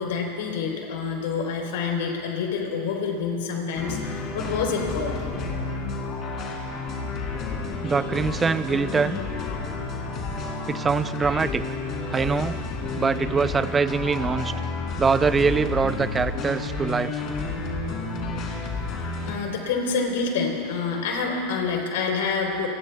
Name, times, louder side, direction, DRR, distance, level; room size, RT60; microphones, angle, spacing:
voice 1, 0.0-5.2 19.3-22.7, left 5 dB, 75° left, 1 dB, 3.6 m, -27 dB
sound 1, 3.7-19.3, left 3 dB, 45° left, 3.5 m, -31 dB
voice 2, 7.8-9.2 10.7-11.6 12.1-12.5 13.0-14.5 15.0-17.2, right 5 dB, 20° right, 13 dB, 0.5 m, -23 dB
28.5 x 20.5 x 2.3 m, 2.9 s
hypercardioid pair, 105°, 0 cm